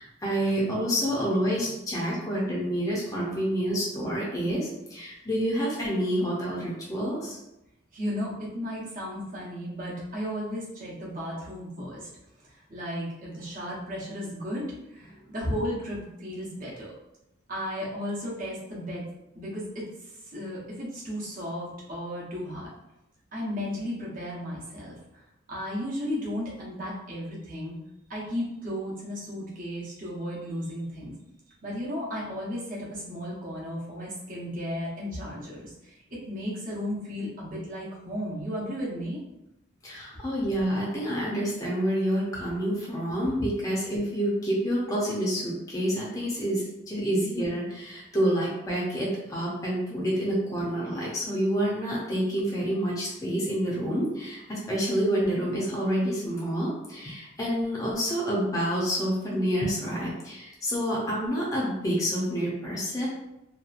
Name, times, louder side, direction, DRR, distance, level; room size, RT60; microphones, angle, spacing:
voice 1, 0.0-7.4 39.8-63.1, equal, 15° left, -5 dB, 0.5 m, -28 dB
voice 2, 7.9-12.1 12.7-16.9 17.5-19.1 19.3-22.7 23.3-24.9 25.5-27.8 28.1-31.1 31.6-39.2, equal, 45° right, -6 dB, 0.8 m, -34 dB
2.8 x 2.3 x 2.4 m, 0.90 s
head